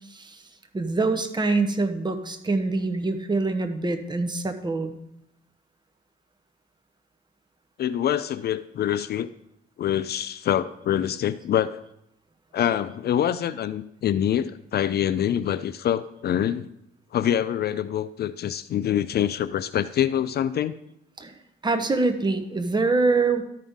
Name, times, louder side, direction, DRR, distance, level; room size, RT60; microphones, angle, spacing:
voice 1, 0.1-0.4 0.7-5.0 21.2-21.3 21.6-23.4, right 3 dB, 20° right, 7 dB, 1.0 m, -24 dB
voice 2, 7.8-9.3 9.8-11.8 12.5-16.7 17.1-20.7, left 10 dB, 55° left, 15 dB, 0.4 m, -25 dB
13.0 x 5.6 x 3.6 m, 0.80 s
cardioid pair, 90°, 20 cm